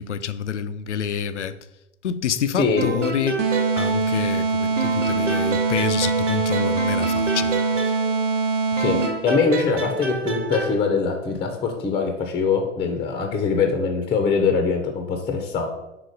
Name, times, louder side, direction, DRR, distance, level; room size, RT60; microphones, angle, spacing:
voice 1, 0.0-1.6 2.0-3.4 3.7-7.6, left 8 dB, 75° left, 0.5 m, -27 dB
sound 1, 2.8-4.5 4.8-8.4 8.8-10.8, right 4 dB, 80° right, 1.0 m, -29 dB
sound 2, 3.4-9.4, right 4 dB, 25° right, 0.7 m, -23 dB
voice 2, 8.8-15.7, left 5 dB, 15° left, 0.7 m, -23 dB
5.0 x 3.7 x 5.1 m
figure-of-eight pair, 100°, 36 cm